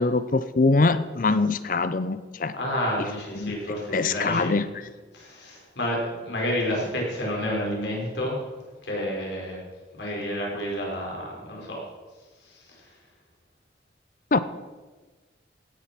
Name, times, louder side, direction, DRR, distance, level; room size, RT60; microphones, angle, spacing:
voice 1, 0.0-2.5 3.4-4.6 14.3-14.4, left 3 dB, 45° left, 14 dB, 0.5 m, -23 dB
voice 2, 2.5-4.5 5.1-8.4 8.8-9.6 10.0-11.8 12.5-12.6, equal, 70° left, -2 dB, 4.9 m, -29 dB
17.0 x 9.5 x 5.9 m, 1.3 s
head